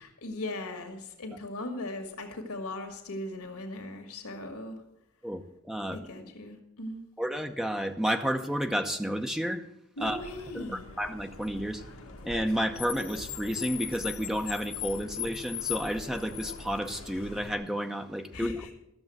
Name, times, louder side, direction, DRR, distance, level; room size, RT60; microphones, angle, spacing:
voice 1, 0.0-4.8 5.9-7.0 10.0-10.9 18.3-18.7, left 1 dB, 80° left, 4 dB, 1.8 m, -38 dB
voice 2, 5.2-6.0 7.2-9.6 10.0-10.2 10.5-11.8 12.2-18.7, equal, ahead, 6 dB, 0.8 m, -31 dB
Car, 10.0-17.5, left 9 dB, 65° left, 1.3 m, -40 dB
13.5 x 7.0 x 7.7 m, 0.84 s
head